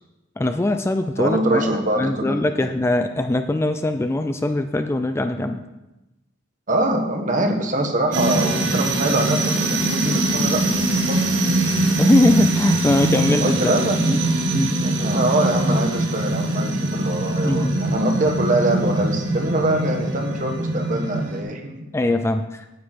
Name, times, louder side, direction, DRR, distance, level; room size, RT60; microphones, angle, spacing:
voice 1, 0.4-1.7 2.0-5.6 12.0-13.7 14.0-14.2 14.5-14.8 17.4-17.7 21.9-22.6, left 2 dB, 15° left, 8 dB, 0.3 m, -21 dB
voice 2, 1.2-2.7 6.7-10.6 10.9-11.2 13.4-14.1 14.8-21.9, right 1 dB, 45° right, 3 dB, 1.2 m, -23 dB
sound 1, 8.1-21.4, right 2 dB, 70° right, 1.6 m, -22 dB
9.4 x 8.4 x 4.4 m, 0.98 s
head